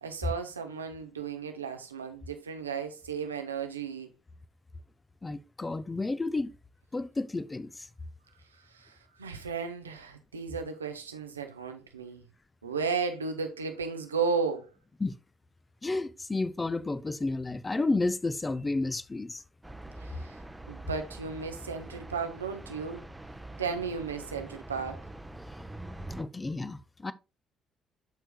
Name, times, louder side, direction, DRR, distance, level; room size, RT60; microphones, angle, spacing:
voice 1, 0.0-4.1 8.5-12.2 12.6-14.7 20.0-20.4 20.7-23.0 23.6-25.0, right 5 dB, 85° right, 0.8 m, -34 dB
voice 2, 5.2-6.5 6.9-7.9 15.0-15.1 15.8-19.4 26.1-27.1, left 2 dB, 20° left, 0.7 m, -31 dB
sound 1, 19.6-26.2, right 1 dB, 10° right, 0.9 m, -44 dB
13.0 x 4.5 x 2.2 m
figure-of-eight pair, 45°, 0 cm